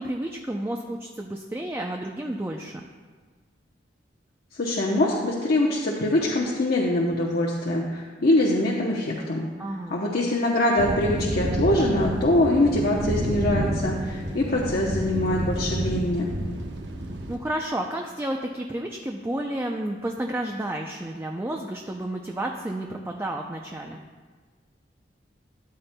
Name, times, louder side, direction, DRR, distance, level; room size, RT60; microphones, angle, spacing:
voice 1, 0.0-2.8 9.6-10.0 17.3-24.0, right 1 dB, 15° right, 2 dB, 0.4 m, -31 dB
voice 2, 4.6-9.5 9.9-16.3, left 1 dB, 60° left, -3 dB, 0.8 m, -23 dB
sound 1, 10.8-17.4, right 1 dB, 85° right, 0.9 m, -29 dB
13.0 x 8.7 x 2.2 m, 1.5 s
head